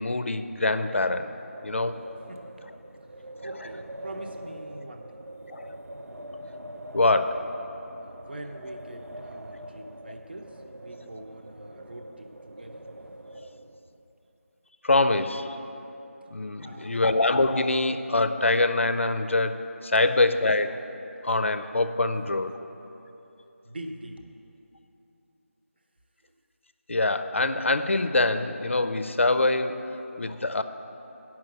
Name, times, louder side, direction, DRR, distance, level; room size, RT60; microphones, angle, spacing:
voice 1, 0.0-1.4 1.6-2.0 5.5-5.7 6.9-7.5 13.4-13.5 14.8-15.6 16.3-20.8 21.2-22.5 26.9-29.9 30.2-30.6, left 2 dB, 55° left, 10 dB, 0.5 m, -24 dB
Wind, 1.4-14.0, equal, 80° right, 0.7 m, -43 dB
voice 2, 3.1-5.2 8.0-12.9 16.6-17.1 20.1-20.2 22.1-22.4 23.6-24.3, right 1 dB, 45° right, 4 dB, 0.8 m, -43 dB
9.4 x 6.0 x 7.7 m, 3.0 s
figure-of-eight pair, 170°, 8 cm